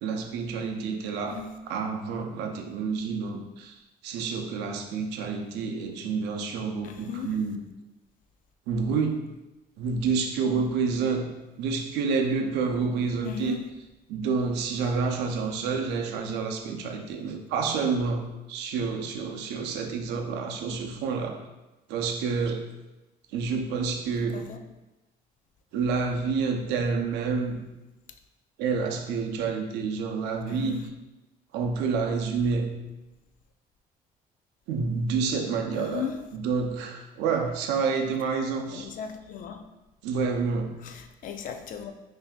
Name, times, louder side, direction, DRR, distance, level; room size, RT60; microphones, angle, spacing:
voice 1, 0.0-3.8 4.0-7.6 8.7-9.2 9.8-11.3 11.6-13.6 14.1-21.4 21.9-22.7 23.3-24.5 25.7-27.6 28.6-30.8 31.5-32.7 34.7-38.9 40.0-40.8, right 5 dB, 90° right, 4 dB, 0.5 m, -28 dB
voice 2, 6.8-7.3 13.2-13.6 20.7-20.9 24.3-24.6 30.5-30.9 35.8-36.2 38.7-39.6 40.8-41.9, left 7 dB, 50° left, 6 dB, 0.4 m, -36 dB
5.6 x 2.7 x 2.2 m, 1.0 s
cardioid pair, 110°, 17 cm